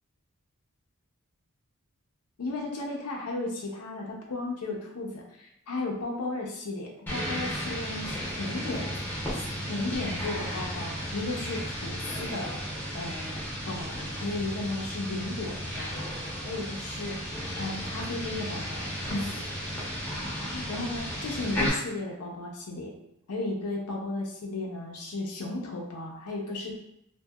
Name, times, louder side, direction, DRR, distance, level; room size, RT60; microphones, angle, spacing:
voice 1, 2.4-8.9 9.3-12.6 12.9-13.4 13.7-19.4 19.7-19.8 20.2-22.9 23.3-26.7, left 2 dB, 85° left, -1 dB, 0.5 m, -35 dB
sound 1, 7.1-21.7, equal, 10° left, 0.7 m, -34 dB
2.7 x 2.6 x 2.2 m, 0.77 s
head